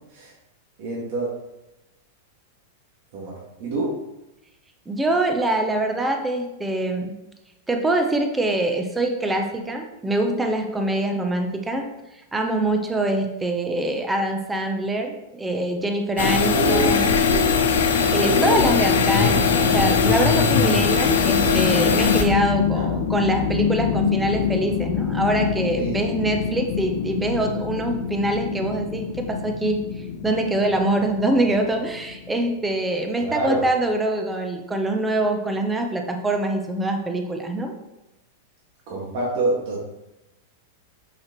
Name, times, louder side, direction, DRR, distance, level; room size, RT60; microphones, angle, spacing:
voice 1, 0.8-1.3 3.1-3.9 16.5-17.5 18.2-18.6 22.8-22.9 25.8-26.3 33.2-33.6 38.9-39.8, right 2 dB, 55° right, -5 dB, 1.9 m, -27 dB
voice 2, 4.9-7.1 7.7-11.9 12.3-17.2 18.1-29.8 30.2-37.7, right 1 dB, 10° right, 4 dB, 0.8 m, -24 dB
sound 1, 16.2-22.2, left 6 dB, 90° left, 0.9 m, -19 dB
sound 2, 20.4-32.5, left 7 dB, 55° left, 0.5 m, -26 dB
6.1 x 5.9 x 3.1 m, 0.94 s
supercardioid pair, 145°, 0 cm